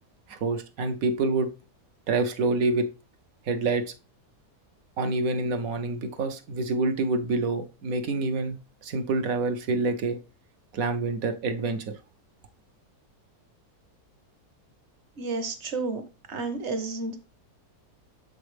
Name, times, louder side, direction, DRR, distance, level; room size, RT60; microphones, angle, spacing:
voice 1, 0.3-1.5 2.1-2.9 3.5-3.8 5.0-8.6 8.8-10.2 10.7-11.8, right 3 dB, 65° right, 1.2 m, -27 dB
voice 2, 15.2-16.0 16.3-17.3, right 3 dB, 50° right, 1.2 m, -31 dB
7.0 x 5.3 x 3.3 m
omnidirectional pair, 1.7 m